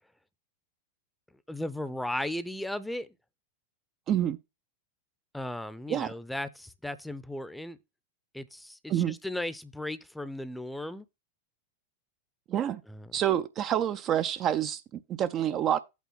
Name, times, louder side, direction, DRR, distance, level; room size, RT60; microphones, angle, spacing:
voice 1, 1.5-3.1 5.3-7.8 8.3-11.1 12.9-13.1, left 1 dB, 5° left, 0.7 m, -36 dB
voice 2, 4.1-4.4 5.9-6.1 8.9-9.1 12.5-12.8 13.1-15.8, right 10 dB, 30° right, 0.5 m, -28 dB
8.3 x 3.7 x 6.1 m
figure-of-eight pair, 90°, 0 cm